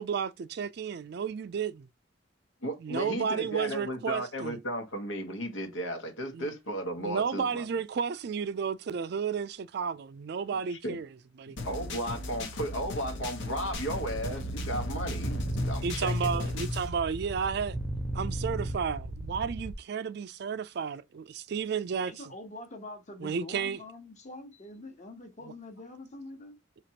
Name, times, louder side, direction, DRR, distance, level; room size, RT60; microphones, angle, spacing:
voice 1, 0.0-1.9 2.8-4.6 6.3-6.5 7.0-11.1 15.8-17.8 18.1-22.1 23.2-23.8, right 6 dB, 55° right, 0.3 m, -32 dB
voice 2, 2.6-7.7 10.7-11.0 11.7-16.5, equal, 90° left, 1.2 m, -35 dB
sound 1, 11.6-16.9, left 2 dB, 65° left, 0.9 m, -36 dB
sound 2, 13.7-19.7, right 1 dB, 10° right, 0.6 m, -36 dB
voice 3, 22.0-26.6, left 2 dB, 35° left, 1.0 m, -45 dB
5.0 x 3.0 x 2.9 m
head